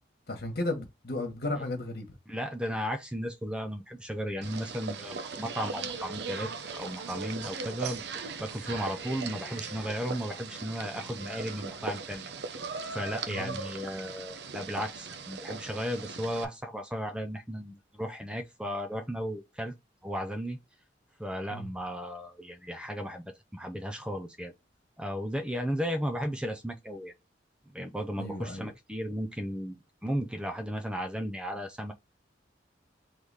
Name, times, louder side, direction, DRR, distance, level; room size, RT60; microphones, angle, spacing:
voice 1, 0.3-2.2 13.3-13.6 21.5-21.7 28.2-28.7, left 2 dB, 60° left, 1.5 m, -34 dB
voice 2, 2.3-8.0 8.4-12.6 12.9-19.8 20.0-20.6 21.2-24.5 25.0-27.1 27.7-31.9, equal, 5° right, 0.5 m, -35 dB
sound 1, 4.4-16.4, right 4 dB, 65° right, 0.7 m, -39 dB
4.0 x 3.2 x 3.4 m
head